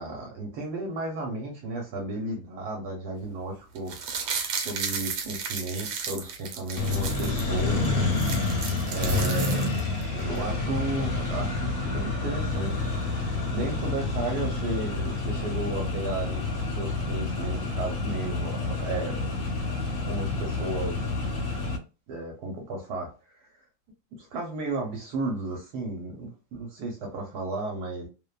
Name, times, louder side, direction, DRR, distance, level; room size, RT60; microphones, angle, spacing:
voice 1, 0.0-4.3 4.6-8.2 8.9-9.7 10.1-19.6 20.1-21.0 22.1-23.1 24.2-28.1, right 2 dB, 70° right, 1.2 m, -34 dB
sound 1, 3.7-7.4 7.8-7.9 8.1-10.0 10.4-10.5, right 6 dB, 90° right, 1.3 m, -34 dB
Accelerating revving vroom, 6.8-21.8, left 3 dB, 65° left, 1.0 m, -28 dB
2.8 x 2.1 x 2.2 m
omnidirectional pair, 1.8 m